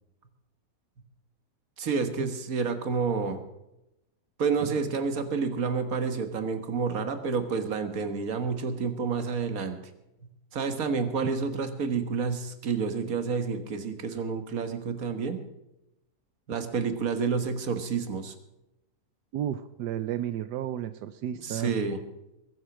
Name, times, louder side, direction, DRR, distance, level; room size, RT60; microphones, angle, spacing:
voice 1, 1.8-3.4 4.4-9.8 10.5-15.4 16.5-18.3 21.4-22.0, right 5 dB, 60° right, 8 dB, 1.8 m, -29 dB
voice 2, 19.3-21.7, right 11 dB, 85° right, 12 dB, 1.3 m, -32 dB
21.5 x 8.1 x 6.1 m, 0.90 s
omnidirectional pair, 1.7 m